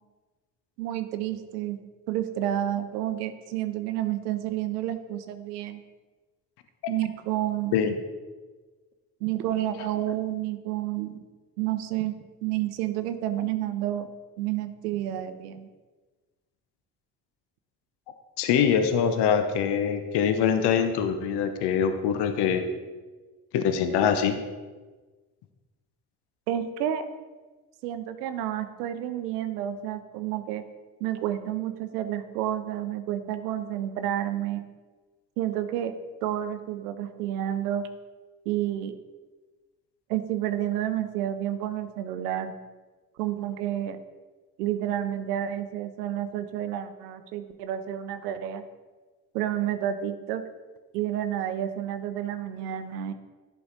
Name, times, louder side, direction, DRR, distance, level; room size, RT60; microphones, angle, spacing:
voice 1, 0.8-1.8 2.1-5.8 6.9-7.8 9.2-11.2 11.6-12.2 12.4-14.1 14.4-15.7 26.5-27.0 27.8-30.6 31.0-34.7 35.4-35.9 36.2-37.9 38.5-38.9 40.1-42.5 43.2-44.0 44.6-48.6 49.3-50.4 50.9-53.1, right 12 dB, 80° right, 10 dB, 0.6 m, -30 dB
voice 2, 18.4-22.6 23.5-24.4, left 7 dB, 60° left, 8 dB, 0.8 m, -24 dB
10.5 x 4.9 x 3.9 m, 1.3 s
figure-of-eight pair, 40°, 46 cm